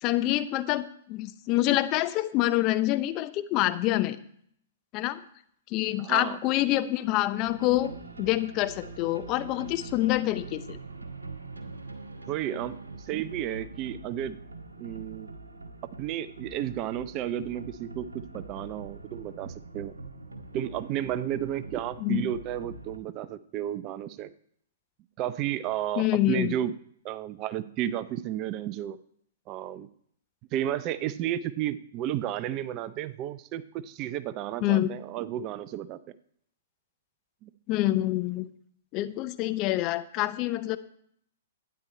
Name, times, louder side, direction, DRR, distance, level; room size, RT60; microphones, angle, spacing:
voice 1, 0.0-4.2 4.9-5.2 5.7-10.8 22.0-22.2 26.0-26.5 34.6-34.9 37.7-38.4 38.9-40.8, left 15 dB, 35° left, 12 dB, 0.7 m, -26 dB
voice 2, 6.0-6.4 12.3-14.4 14.8-15.3 16.0-19.9 20.5-24.3 25.2-26.7 27.0-29.0 29.5-29.9 30.5-36.0 37.4-37.5, right 11 dB, 35° right, 14 dB, 0.6 m, -32 dB
sound 1, 7.4-23.0, right 3 dB, 85° right, 1.7 m, -44 dB
12.0 x 9.9 x 4.3 m, 0.65 s
figure-of-eight pair, 115°, 0 cm